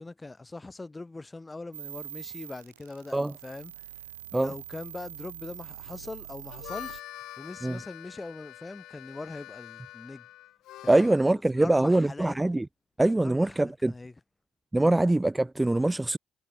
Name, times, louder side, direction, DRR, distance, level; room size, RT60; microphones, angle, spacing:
voice 1, 0.0-3.7 4.3-7.0 7.4-10.3 10.8-11.1 11.5-12.4 13.2-14.1 14.8-15.0, left 2 dB, 20° left, 7.6 m, -41 dB
sound 1, 1.7-7.0, right 12 dB, 80° right, 1.0 m, -44 dB
Harmonica, 6.3-11.3, left 15 dB, 60° left, 2.4 m, -45 dB
voice 2, 10.9-12.7 13.0-13.9 14.7-16.2, right 2 dB, 10° right, 1.0 m, -23 dB
figure-of-eight pair, 50°, 0 cm